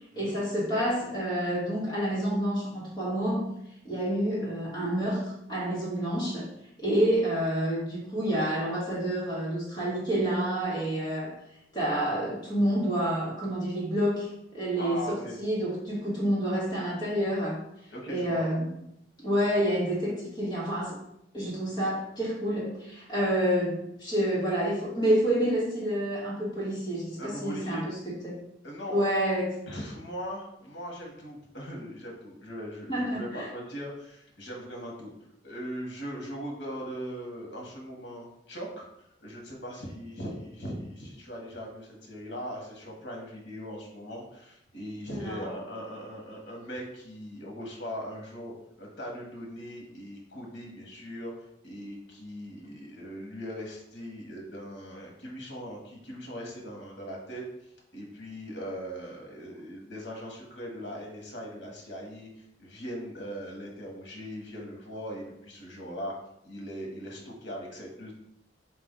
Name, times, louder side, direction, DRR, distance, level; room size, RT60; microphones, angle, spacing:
voice 1, 0.1-3.5 3.8-5.2 5.5-6.5 6.8-11.3 11.7-17.6 18.1-18.7 19.2-21.0 21.3-27.8 28.2-28.4 28.9-29.6 32.9-33.5 45.1-45.5, right 1 dB, 20° left, -6 dB, 1.4 m, -28 dB
voice 2, 14.8-15.4 17.9-18.5 27.2-27.9 28.6-29.0 29.5-35.1 35.4-51.3 51.6-57.4 57.9-66.1 66.4-68.1, equal, 80° left, -1 dB, 1.1 m, -40 dB
4.5 x 2.5 x 3.6 m, 0.79 s
head